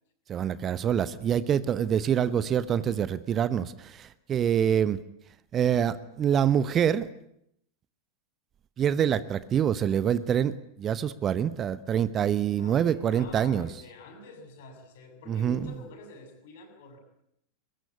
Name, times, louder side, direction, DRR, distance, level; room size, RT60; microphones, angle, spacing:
voice 1, 0.3-5.0 5.5-7.1 8.8-13.7 15.3-15.6, right 9 dB, 25° right, 16 dB, 1.0 m, -26 dB
voice 2, 12.6-17.0, left 3 dB, 55° left, 7 dB, 7.1 m, -48 dB
22.0 x 22.0 x 9.7 m, 0.76 s
figure-of-eight pair, 90°, 0 cm